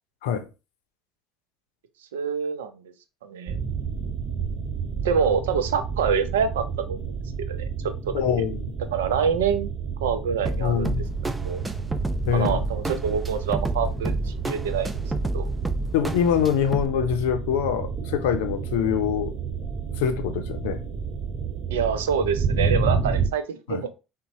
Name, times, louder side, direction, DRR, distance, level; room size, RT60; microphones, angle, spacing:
voice 1, 2.1-2.8 3.2-3.6 5.0-7.7 8.1-8.2 8.9-9.7 10.0-11.6 12.3-14.9 15.3-15.5 21.7-23.9, right 6 dB, 85° right, 0.4 m, -26 dB
sound 1, 3.5-23.3, right 5 dB, 40° right, 1.0 m, -30 dB
voice 2, 8.1-8.7 10.6-11.0 12.3-12.6 15.9-19.3 20.0-20.8 23.7-23.8, left 8 dB, 80° left, 0.5 m, -24 dB
sound 2, 10.5-16.9, right 1 dB, 15° right, 0.4 m, -30 dB
4.0 x 2.1 x 2.7 m
hypercardioid pair, 70°, 0 cm